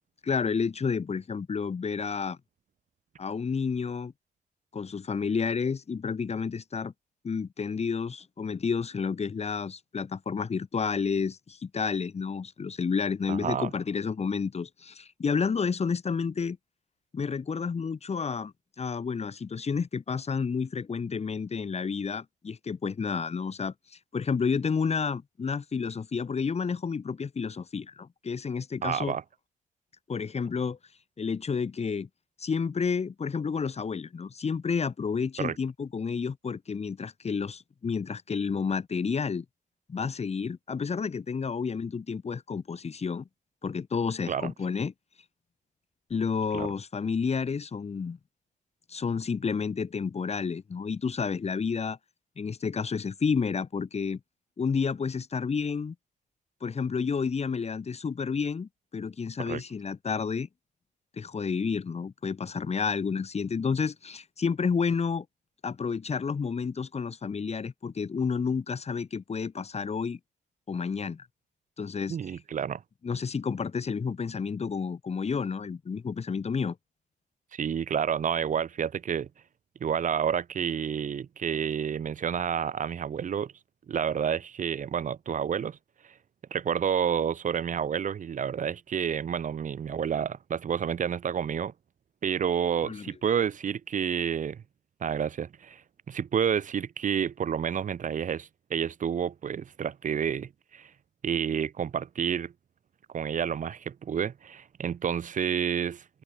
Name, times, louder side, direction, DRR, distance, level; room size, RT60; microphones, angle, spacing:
voice 1, 0.2-2.4 3.2-4.1 4.7-6.9 7.2-16.6 17.1-23.7 24.1-29.1 30.1-30.8 31.2-32.1 32.4-39.5 39.9-43.3 43.6-44.9 46.1-48.2 48.9-52.0 52.4-54.2 54.6-56.0 56.6-60.5 61.1-65.3 65.6-70.2 70.7-71.3 71.8-72.2 73.0-76.8 92.8-93.1, left 5 dB, 45° left, 2.2 m, -30 dB
voice 2, 13.3-13.7 28.8-29.2 35.4-35.5 44.3-44.5 46.5-46.7 59.5-59.6 72.1-72.8 77.5-79.3 79.8-83.5 83.9-85.8 86.5-91.7 92.2-94.6 95.0-95.8 96.1-100.9 101.2-102.5 103.1-106.2, right 8 dB, 60° right, 1.5 m, -29 dB
cardioid pair, 60°, 15 cm